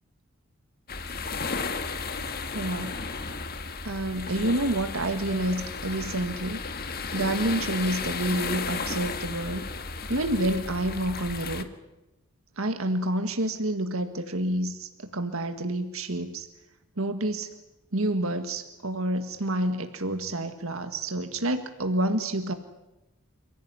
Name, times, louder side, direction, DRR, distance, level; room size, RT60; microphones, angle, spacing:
sound 1, 0.9-11.6, left 4 dB, 45° left, 1.7 m, -34 dB
voice 1, 2.5-3.0 3.8-6.6 7.1-9.7 10.1-11.7 12.6-16.5 17.0-17.5 17.9-22.5, right 1 dB, 75° right, 7 dB, 1.8 m, -28 dB
29.0 x 16.0 x 9.7 m, 0.98 s
head